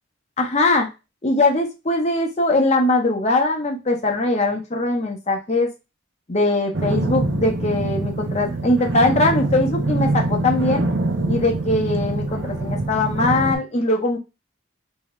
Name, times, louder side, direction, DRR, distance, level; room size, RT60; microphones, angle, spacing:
voice 1, 0.4-0.9 1.2-5.7 6.3-10.8 11.3-14.2, left 2 dB, 35° left, 2 dB, 0.7 m, -21 dB
sound 1, 6.7-13.5, right 2 dB, 60° right, 0.7 m, -24 dB
3.4 x 2.8 x 3.1 m, 0.26 s
head